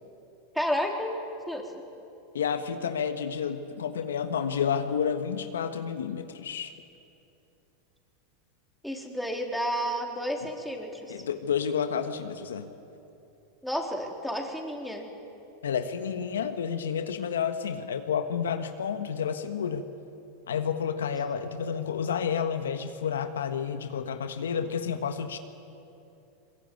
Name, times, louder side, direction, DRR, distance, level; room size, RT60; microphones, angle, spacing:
voice 1, 0.5-1.2 1.5-1.7 8.8-11.1 13.6-15.1, equal, ahead, 1 dB, 3.7 m, -31 dB
voice 2, 2.3-6.7 11.1-12.7 15.6-19.8 20.5-25.4, left 7 dB, 90° left, 8 dB, 1.4 m, -30 dB
22.0 x 21.5 x 9.3 m, 2.8 s
hypercardioid pair, 110°, 0 cm